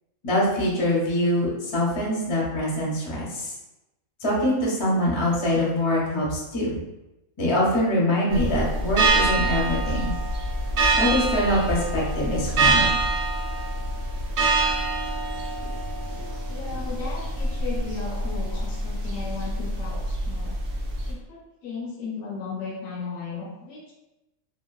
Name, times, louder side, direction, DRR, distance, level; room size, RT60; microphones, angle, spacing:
voice 1, 0.2-3.5 4.2-6.8 7.4-10.1 11.0-12.9, left 1 dB, 30° left, -5 dB, 0.5 m, -24 dB
sound 1, 8.3-21.1, right 2 dB, 80° right, 0.4 m, -25 dB
voice 2, 16.5-20.6 21.1-23.9, left 4 dB, 70° left, -2 dB, 0.9 m, -36 dB
2.9 x 2.2 x 2.3 m, 0.96 s
omnidirectional pair, 1.5 m